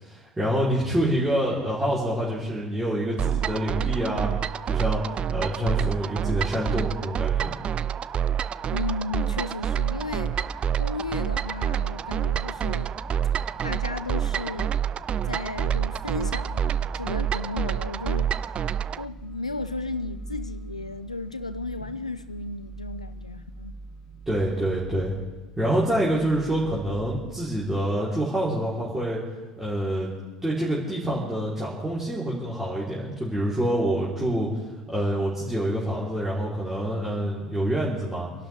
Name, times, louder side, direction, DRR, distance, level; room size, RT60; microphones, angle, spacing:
voice 1, 0.0-4.3 4.7-7.6 24.3-25.1 25.6-29.2 29.6-30.1 30.4-34.5 34.9-38.3, right 1 dB, 10° right, -7 dB, 3.6 m, -26 dB
sound 1, 3.2-19.0, right 9 dB, 30° right, 0.4 m, -27 dB
voice 2, 8.7-10.5 10.8-12.9 13.6-14.8 15.2-18.5 19.0-23.7, left 3 dB, 90° left, 12 dB, 0.8 m, -34 dB
sound 2, 9.9-27.8, right 2 dB, 25° left, 1.9 m, -41 dB
27.5 x 11.5 x 3.4 m, 1.3 s
figure-of-eight pair, 75°, 3 cm